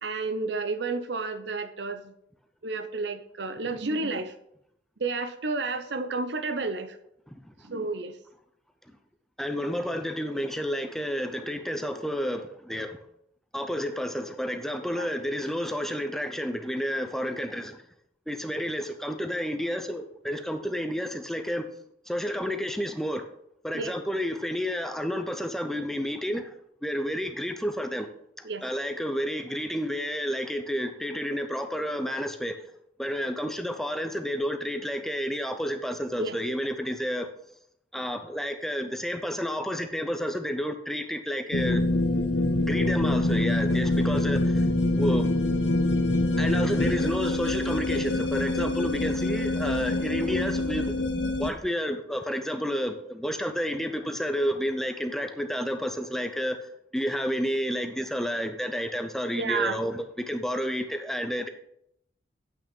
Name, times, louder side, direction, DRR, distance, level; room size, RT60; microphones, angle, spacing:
voice 1, 0.0-2.1 2.6-4.3 5.0-7.0 7.6-8.2 14.9-15.1 23.7-23.9 28.4-28.6 36.2-36.4 59.4-59.8, right 3 dB, 65° right, 10 dB, 0.7 m, -31 dB
voice 2, 9.4-13.0 13.5-17.8 18.3-21.7 22.1-23.3 23.6-26.5 26.8-28.1 28.4-32.6 33.0-37.3 37.9-41.8 42.7-44.7 44.9-45.3 46.4-50.9 51.4-61.5, equal, ahead, 6 dB, 0.6 m, -30 dB
sound 1, 41.5-51.5, left 2 dB, 70° left, 1.1 m, -25 dB
8.5 x 6.1 x 5.2 m, 0.73 s
head